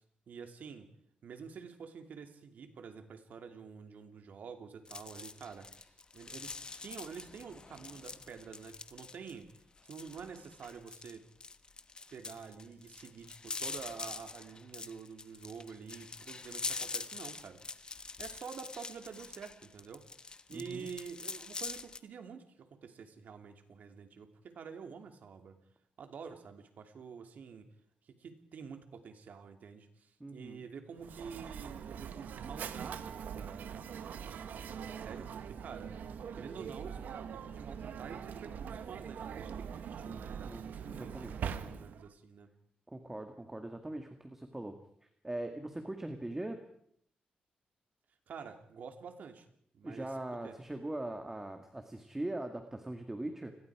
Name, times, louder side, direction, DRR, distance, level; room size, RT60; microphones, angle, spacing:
voice 1, 0.3-0.9 1.2-9.5 9.9-11.3 12.1-17.9 18.2-25.6 26.0-27.7 28.0-34.2 34.6-36.0 36.3-42.5 48.3-49.5 49.7-50.6, right 6 dB, 70° right, 6 dB, 2.9 m, -48 dB
sound 1, 4.9-22.0, left 4 dB, 30° left, 1.1 m, -44 dB
voice 2, 20.5-20.9 30.2-30.6 40.1-41.3 42.9-44.8 45.2-46.6 49.8-53.5, right 1 dB, 15° right, 6 dB, 2.0 m, -41 dB
Mechanisms, 31.0-42.1, right 7 dB, 85° right, 1.4 m, -43 dB
29.5 x 21.5 x 4.9 m, 0.67 s
wide cardioid pair, 130°, 3 cm